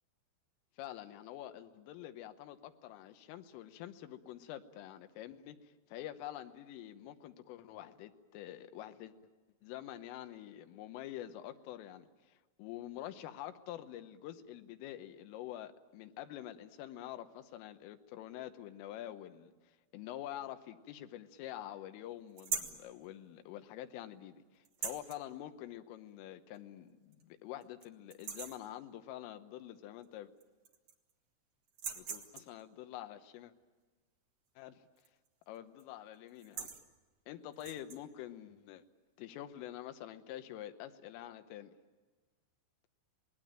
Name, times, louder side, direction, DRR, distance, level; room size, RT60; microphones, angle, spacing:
voice 1, 0.8-9.1 9.6-30.3 32.0-33.5 34.6-34.8 35.5-36.7 37.3-38.8 39.2-41.8, left 12 dB, 80° left, 9 dB, 3.5 m, -47 dB
sound 1, 22.4-22.8 24.6-25.2 26.5-26.6 27.1-27.2 27.6-27.8 28.1-28.7 30.0-30.1 30.4-31.1 31.7-32.6 35.0-35.3 35.5-35.8 36.3-36.8 37.5-38.0, right 6 dB, 90° right, 1.5 m, -41 dB
27.0 x 20.0 x 9.0 m, 1.3 s
omnidirectional pair, 5.9 m